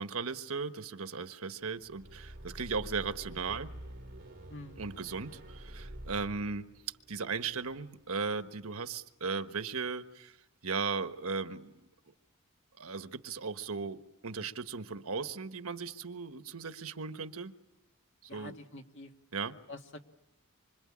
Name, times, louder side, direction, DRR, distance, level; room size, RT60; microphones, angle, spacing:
voice 1, 0.0-3.7 4.8-6.7 7.1-10.4 10.6-11.7 12.8-17.5 18.2-18.5 19.3-19.5, right 4 dB, 80° right, 9 dB, 1.3 m, -37 dB
sound 1, 1.8-8.1, right 1 dB, 45° right, 4.3 m, -48 dB
voice 2, 4.5-4.8 18.3-19.1 19.7-20.0, left 2 dB, 55° left, 4 dB, 2.0 m, -47 dB
26.0 x 25.5 x 8.7 m, 0.95 s
head